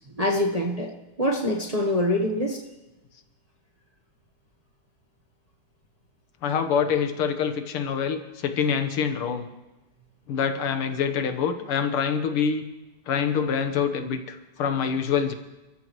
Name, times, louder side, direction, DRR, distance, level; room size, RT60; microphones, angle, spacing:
voice 1, 0.1-2.6, left 1 dB, 25° right, -1 dB, 0.9 m, -25 dB
voice 2, 6.4-9.5 10.3-12.6 13.1-15.3, left 7 dB, 90° left, 8 dB, 2.1 m, -25 dB
30.0 x 13.5 x 3.1 m, 1.1 s
omnidirectional pair, 2.3 m